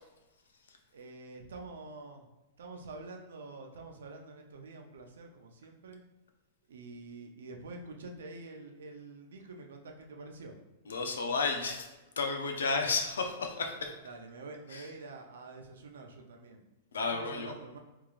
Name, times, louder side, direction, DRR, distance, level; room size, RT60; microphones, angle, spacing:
voice 1, 0.9-2.3 2.6-6.0 6.7-10.5 14.0-16.6 17.1-17.8, right 3 dB, 80° right, 2 dB, 0.6 m, -47 dB
voice 2, 10.9-11.8 12.2-13.9 14.7-14.8 16.9-17.5, left 4 dB, 85° left, 4 dB, 0.5 m, -32 dB
3.5 x 3.2 x 2.4 m, 1.0 s
hypercardioid pair, 120°, 0 cm